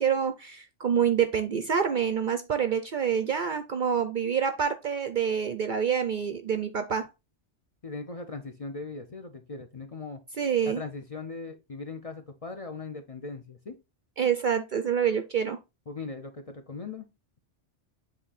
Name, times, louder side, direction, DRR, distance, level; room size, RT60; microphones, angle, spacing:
voice 1, 0.0-7.1 10.4-10.8 14.2-15.6, right 7 dB, 55° right, 0.6 m, -27 dB
voice 2, 7.8-10.2 10.6-13.8 15.9-17.1, left 3 dB, 35° left, 0.6 m, -39 dB
7.8 x 3.2 x 4.0 m
omnidirectional pair, 1.2 m